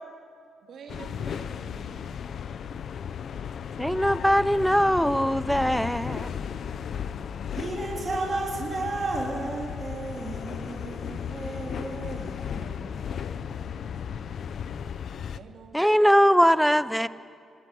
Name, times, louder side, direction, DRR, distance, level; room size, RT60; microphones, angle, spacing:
voice 1, 0.6-2.4 12.0-14.3 15.3-16.9, right 5 dB, 70° right, 3 dB, 3.1 m, -49 dB
sound 1, 0.9-15.4, left 7 dB, 65° left, 0.9 m, -35 dB
voice 2, 3.8-6.3 15.7-17.1, equal, ahead, 15 dB, 0.7 m, -21 dB
voice 3, 7.5-13.1, right 2 dB, 35° right, -3 dB, 3.7 m, -33 dB
26.0 x 21.5 x 9.4 m, 2.3 s
cardioid pair, 115°, 0 cm